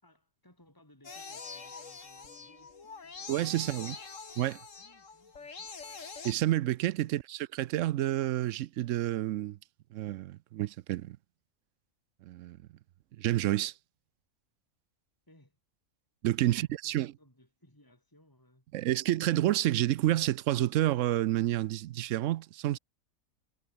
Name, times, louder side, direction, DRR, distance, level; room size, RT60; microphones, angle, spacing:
voice 1, 0.0-4.0 4.8-5.7 7.0-7.2 15.3-15.6 16.4-18.7, left 1 dB, 15° left, 4.5 m, -63 dB
sound 1, 1.0-6.3, left 4 dB, 60° left, 2.5 m, -45 dB
voice 2, 3.3-4.0 4.4-4.6 6.2-9.6 9.9-11.2 12.2-12.6 13.2-13.7 16.2-17.1 18.7-22.8, right 14 dB, 70° right, 0.8 m, -29 dB
omnidirectional pair, 1.5 m